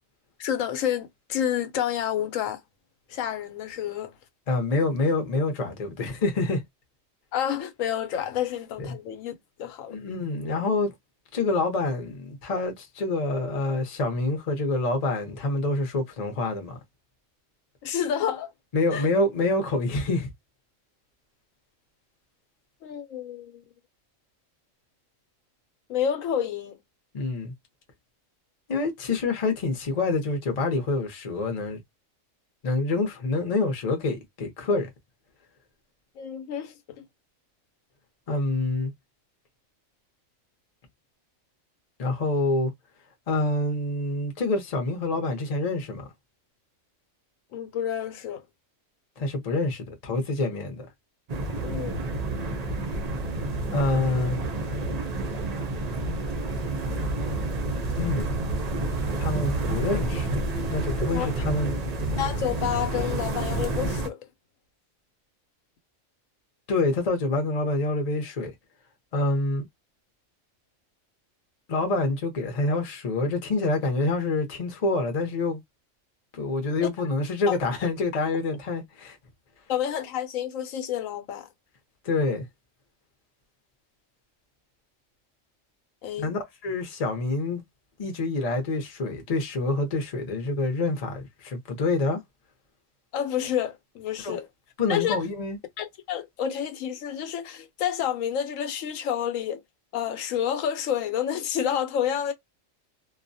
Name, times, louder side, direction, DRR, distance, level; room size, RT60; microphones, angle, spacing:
voice 1, 0.4-2.6 3.1-4.1 7.3-9.3 9.6-10.0 17.8-18.5 18.9-19.1 22.8-23.6 25.9-26.8 36.2-37.0 47.5-48.4 51.6-52.0 61.1-61.3 62.2-64.3 76.8-76.9 77.5-77.6 79.7-81.5 86.0-86.3 93.1-94.5 94.9-95.2 95.8-99.6 99.9-102.3, left 9 dB, 80° left, 1.0 m, -29 dB
voice 2, 4.5-6.6 8.8-9.0 9.9-10.9 11.3-16.8 18.7-20.3 27.1-27.5 28.7-31.8 32.6-34.9 38.3-38.9 42.0-42.7 43.3-46.1 49.2-50.9 53.7-54.4 58.0-58.4 59.2-60.4 60.7-61.7 66.7-68.5 69.1-69.6 71.7-75.6 76.3-79.2 82.0-82.5 86.2-87.6 88.0-92.2 94.2-94.4 94.8-95.6, left 2 dB, 40° left, 0.6 m, -27 dB
sound 1, 51.3-64.1, right 2 dB, 50° right, 0.5 m, -29 dB
2.4 x 2.1 x 2.6 m
omnidirectional pair, 1.4 m